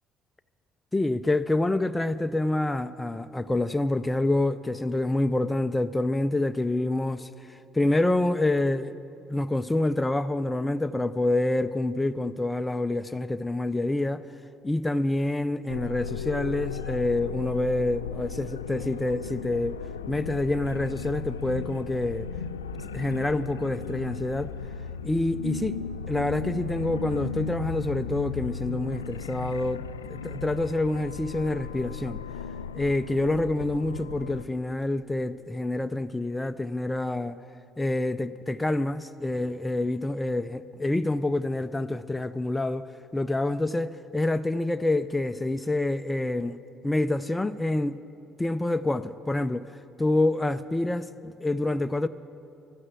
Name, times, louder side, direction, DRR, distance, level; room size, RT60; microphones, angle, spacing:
voice 1, 0.9-8.9 9.3-14.2 14.6-19.8 20.1-22.3 22.7-24.5 25.0-25.8 26.1-29.8 30.1-32.2 32.7-37.4 37.8-42.9 43.1-46.6 46.8-48.0 48.4-49.6 50.0-52.1, left 2 dB, 15° left, 0.4 m, -27 dB
sound 1, 15.7-34.4, left 6 dB, 80° left, 0.3 m, -36 dB
12.5 x 12.0 x 7.5 m
figure-of-eight pair, 50°, 0 cm